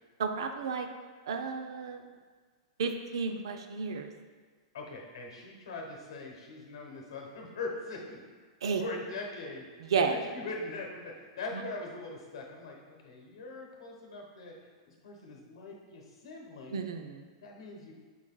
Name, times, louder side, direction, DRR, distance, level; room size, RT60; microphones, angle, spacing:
voice 1, 0.2-0.9 1.3-2.0 2.8-4.1 8.6-8.8 9.8-10.2 11.5-11.6 16.7-17.3, right 5 dB, 85° right, 6 dB, 0.4 m, -32 dB
voice 2, 4.7-8.3 8.8-9.7 10.1-14.6 14.8-16.8 17.4-17.9, left 3 dB, 85° left, 0 dB, 1.0 m, -41 dB
6.0 x 4.0 x 2.2 m, 1.5 s
hypercardioid pair, 135°, 3 cm